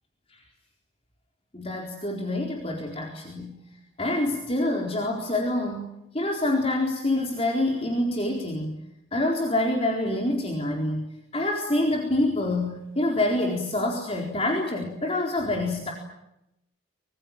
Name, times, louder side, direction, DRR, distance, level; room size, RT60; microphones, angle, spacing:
voice 1, 1.5-3.6 4.0-8.8 9.1-11.1 11.3-15.9, left 1 dB, 30° left, 0 dB, 4.2 m, -26 dB
25.5 x 23.5 x 9.1 m, 0.85 s
head